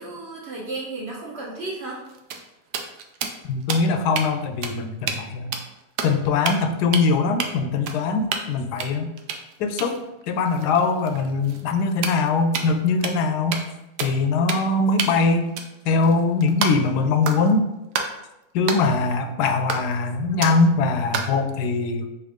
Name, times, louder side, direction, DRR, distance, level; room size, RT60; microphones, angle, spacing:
voice 1, 0.0-2.0, right 2 dB, 50° right, -3 dB, 1.0 m, -33 dB
sound 1, 1.9-4.3 4.6-4.7 5.0-5.2 5.5-6.1 6.4-6.7 6.9-7.1 7.4-7.5 7.9-8.5 8.8-12.8 13.0-13.2 13.5-13.7 14.0-14.2 14.5-14.7 15.0-16.9 17.2-17.5 17.9-18.1 18.7-18.8 19.7-20.0 20.4-20.7 21.1-21.4, right 6 dB, 85° right, 1.1 m, -30 dB
voice 2, 3.5-5.5 6.0-9.1 9.6-10.0 10.3-13.6 14.0-15.5 15.9-17.6 18.5-22.1, left 4 dB, 90° left, 7 dB, 1.1 m, -22 dB
4.1 x 3.6 x 3.5 m, 0.93 s
omnidirectional pair, 1.7 m